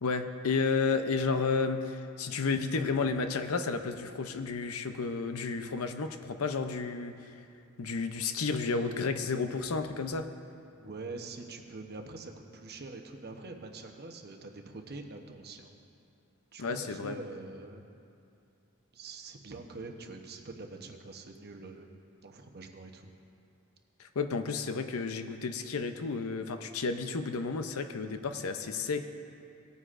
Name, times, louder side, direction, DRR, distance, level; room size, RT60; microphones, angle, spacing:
voice 1, 0.0-7.1 7.8-10.3 16.6-17.2 24.0-29.0, left 4 dB, 80° left, 8 dB, 0.6 m, -32 dB
voice 2, 10.7-15.7 16.5-17.9 18.9-22.0 22.2-23.1, right 3 dB, 50° right, 4 dB, 0.9 m, -45 dB
19.0 x 9.5 x 2.5 m, 2.5 s
head